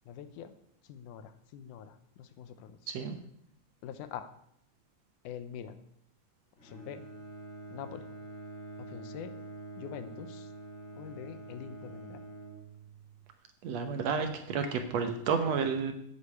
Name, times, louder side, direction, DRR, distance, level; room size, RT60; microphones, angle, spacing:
voice 1, 0.1-0.5 0.9-2.8 3.8-4.3 5.2-5.8 6.6-7.0 7.7-8.0 8.9-9.4 9.8-10.5 11.0-12.2, left 9 dB, 80° left, 11 dB, 2.3 m, -44 dB
voice 2, 2.9-3.2 13.6-15.9, right 5 dB, 65° right, 7 dB, 1.9 m, -31 dB
Bowed string instrument, 6.6-13.2, right 2 dB, 25° left, 2.4 m, -46 dB
8.7 x 8.1 x 8.3 m, 0.73 s
omnidirectional pair, 3.6 m